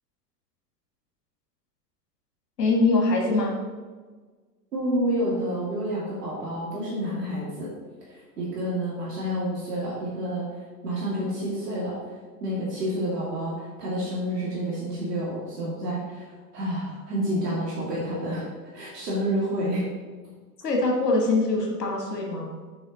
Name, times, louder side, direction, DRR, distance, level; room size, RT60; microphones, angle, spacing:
voice 1, 2.6-3.6 20.6-22.5, left 2 dB, 80° left, 0 dB, 1.5 m, -23 dB
voice 2, 4.7-7.7 8.1-10.5 10.8-12.0 12.4-18.5 18.7-19.8, equal, 75° right, -7 dB, 2.3 m, -29 dB
7.8 x 5.1 x 4.1 m, 1.4 s
figure-of-eight pair, 85°, 48 cm